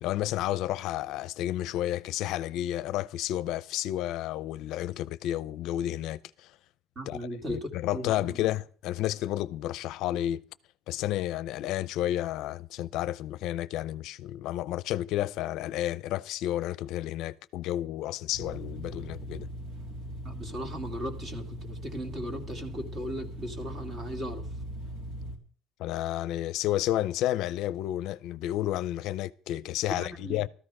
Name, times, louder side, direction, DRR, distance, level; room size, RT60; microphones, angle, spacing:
voice 1, 0.0-6.5 7.1-7.2 7.5-10.4 10.9-19.5 25.8-30.5, left 13 dB, 65° left, 0.6 m, -31 dB
voice 2, 7.0-8.4 20.2-24.4 29.9-30.4, equal, 25° right, 2.3 m, -37 dB
sound 1, 18.3-25.4, equal, 60° right, 3.2 m, -40 dB
14.0 x 13.5 x 4.9 m
cardioid pair, 160°, 0 cm